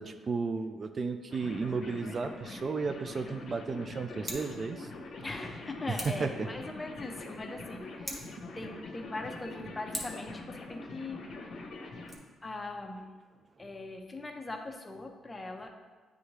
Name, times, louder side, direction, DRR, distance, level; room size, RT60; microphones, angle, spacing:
voice 1, 0.0-4.9 6.0-6.3, right 4 dB, 40° right, 7 dB, 0.3 m, -33 dB
sound 1, 1.3-12.2, left 3 dB, 60° left, 0.9 m, -44 dB
Scissors, 4.1-4.5 5.9-6.3 8.0-8.4 9.9-10.3 11.9-12.1, equal, 5° right, 1.6 m, -40 dB
voice 2, 5.2-8.2 8.5-11.5 12.4-13.0 13.6-15.7, left 2 dB, 20° left, 3 dB, 0.8 m, -41 dB
9.2 x 3.5 x 3.2 m, 1.4 s
cardioid pair, 90°, 0 cm